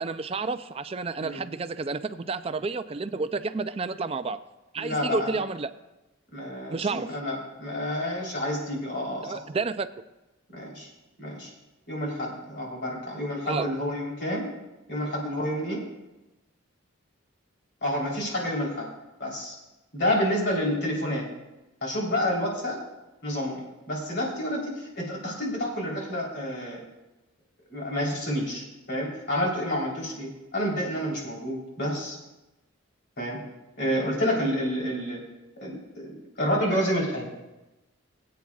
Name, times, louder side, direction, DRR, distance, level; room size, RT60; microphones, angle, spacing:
voice 1, 0.0-4.4 4.7-5.7 6.7-7.1 9.2-9.9 13.5-13.8, right 4 dB, 30° right, 12 dB, 0.4 m, -30 dB
voice 2, 4.8-5.4 6.3-9.3 10.5-10.9 11.2-11.5 11.9-14.5 14.9-15.8 17.8-18.9 19.2-19.5 19.9-21.2 21.8-22.8 23.2-26.8 27.7-32.2 33.2-33.4 33.8-35.2 35.6-36.1 36.4-37.3, equal, 55° left, -3 dB, 3.5 m, -29 dB
22.5 x 8.6 x 2.4 m, 1.0 s
head